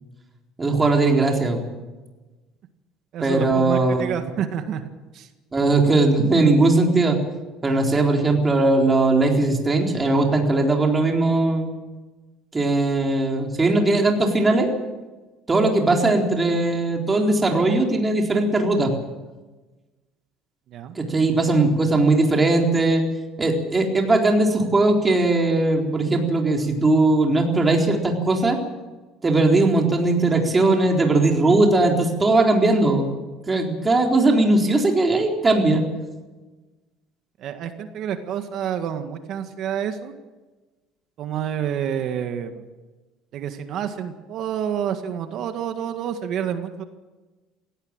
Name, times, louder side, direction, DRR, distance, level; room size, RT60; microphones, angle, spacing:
voice 1, 0.6-1.7 3.2-4.1 5.5-7.2 7.6-11.7 12.5-14.7 15.5-18.9 21.0-23.0 23.4-28.6 29.2-33.1 33.5-35.8, right 2 dB, 20° right, 1 dB, 4.1 m, -19 dB
voice 2, 3.1-4.8 5.1-5.3 20.7-21.0 37.4-40.1 41.2-42.6 43.3-46.8, right 9 dB, 55° right, 7 dB, 1.8 m, -28 dB
18.0 x 17.0 x 9.0 m, 1.2 s
cardioid pair, 115°, 0 cm